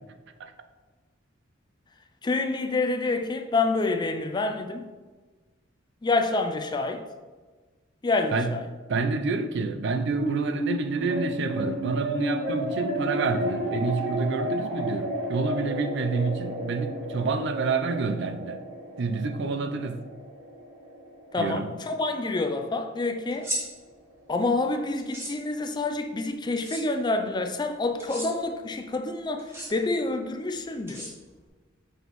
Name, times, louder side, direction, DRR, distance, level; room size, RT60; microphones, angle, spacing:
voice 1, 2.2-4.9 6.0-7.0 8.0-8.6 21.3-23.5 24.3-31.1, left 3 dB, 20° left, 0.4 m, -27 dB
voice 2, 8.9-18.6 19.0-20.0 21.4-21.7, right 4 dB, 60° right, 0.4 m, -28 dB
sound 1, 10.1-22.7, equal, 90° right, 1.6 m, -32 dB
sound 2, 23.3-23.6 25.0-25.3 26.6-26.8 28.0-28.3 29.4-29.7 30.9-31.5, right 1 dB, 15° right, 1.3 m, -34 dB
5.9 x 5.3 x 3.1 m
head